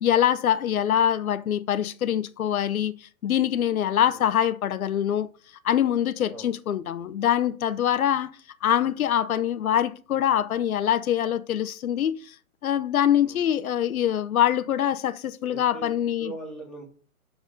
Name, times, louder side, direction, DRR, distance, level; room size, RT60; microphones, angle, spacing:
voice 1, 0.0-5.3 5.6-8.3 8.6-12.4 12.6-16.3, left 10 dB, 75° left, 0.7 m, -24 dB
voice 2, 15.5-15.9 16.2-16.9, right 2 dB, ahead, 2.0 m, -40 dB
6.1 x 5.4 x 5.0 m
hypercardioid pair, 140°, 43 cm